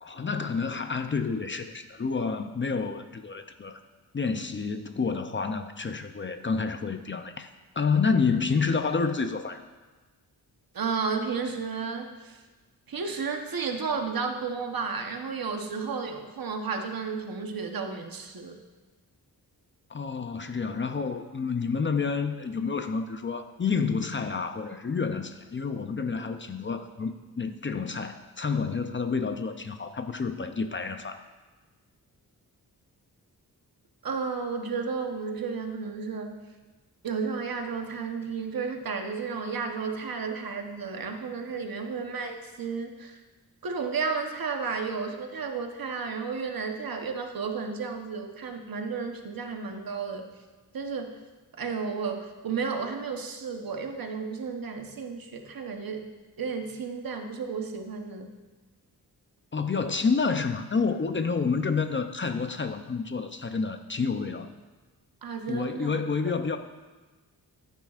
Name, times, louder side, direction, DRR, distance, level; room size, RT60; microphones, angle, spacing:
voice 1, 0.0-3.8 4.1-7.5 7.7-9.6 19.9-31.2 59.5-64.5 65.5-66.6, left 5 dB, 30° left, 7 dB, 0.5 m, -29 dB
voice 2, 10.7-12.4 12.9-18.6 34.0-36.4 37.0-43.2 43.6-50.3 50.7-51.2 51.6-56.0 56.4-58.3 65.2-65.9, right 5 dB, 65° right, 4 dB, 1.1 m, -32 dB
15.0 x 9.2 x 2.5 m, 1.2 s
wide cardioid pair, 115°, 38 cm